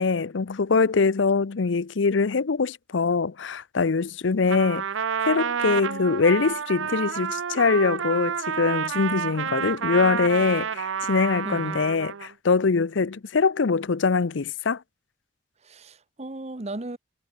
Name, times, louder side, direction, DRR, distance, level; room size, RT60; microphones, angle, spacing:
voice 1, 0.0-4.8 5.3-14.8, left 4 dB, 70° left, 0.6 m, -23 dB
Trumpet, 4.5-12.3, right 7 dB, 75° right, 0.6 m, -29 dB
voice 2, 11.4-11.8 15.6-17.0, right 2 dB, 35° right, 1.0 m, -36 dB
head